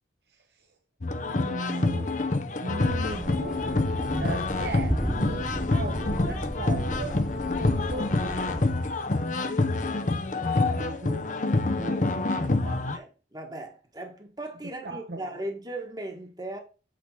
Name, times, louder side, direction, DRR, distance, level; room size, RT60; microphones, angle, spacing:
voice 1, 0.3-0.7 1.3-2.1 2.6-7.3 7.6-8.4 10.7-13.0 14.8-15.4, right 2 dB, 60° right, 0.9 m, -38 dB
sound 1, 1.0-13.0, left 2 dB, 45° left, 0.7 m, -27 dB
Thunder, 2.8-8.9, equal, ahead, 1.3 m, -33 dB
voice 2, 13.3-16.6, right 1 dB, 20° right, 1.4 m, -37 dB
8.6 x 3.7 x 5.6 m
head